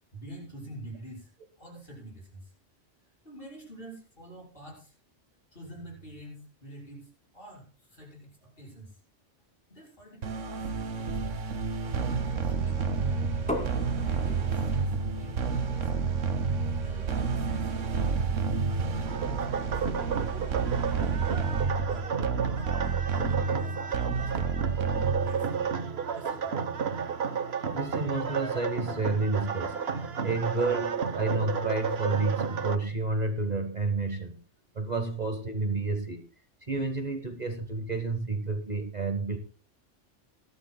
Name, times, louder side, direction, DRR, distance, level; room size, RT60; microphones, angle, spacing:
voice 1, 0.1-1.3 1.6-2.5 3.0-4.9 5.5-9.0 9.4-11.4 11.8-13.3 14.0-18.1 18.6-19.9 20.3-21.3 21.8-22.1 22.5-24.5 25.2-25.8 26.1-26.6, right 1 dB, 45° left, -3 dB, 6.3 m, -47 dB
sound 1, 10.2-25.6, right 5 dB, 90° right, 1.5 m, -30 dB
sound 2, 13.5-19.1, left 1 dB, 5° left, 2.6 m, -42 dB
sound 3, 19.1-32.8, right 6 dB, 60° right, 1.2 m, -32 dB
voice 2, 27.7-29.8 30.2-34.3 34.7-36.2 36.7-39.4, right 3 dB, 35° right, 5 dB, 1.3 m, -30 dB
21.0 x 12.5 x 2.2 m, 0.37 s
omnidirectional pair, 1.2 m